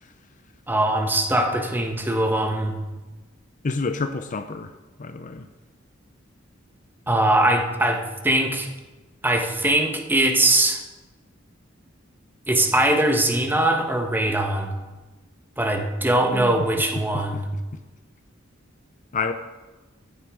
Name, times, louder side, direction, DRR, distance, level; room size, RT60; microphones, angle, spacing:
voice 1, 0.7-2.8 7.1-8.7 9.2-10.8 12.5-14.7 15.6-17.5, right 1 dB, 10° right, 4 dB, 1.3 m, -21 dB
voice 2, 3.6-4.7 5.0-5.5 16.2-16.6 17.0-17.1 19.1-19.3, left 4 dB, 40° left, 9 dB, 0.6 m, -28 dB
14.0 x 9.2 x 5.0 m, 1.2 s
head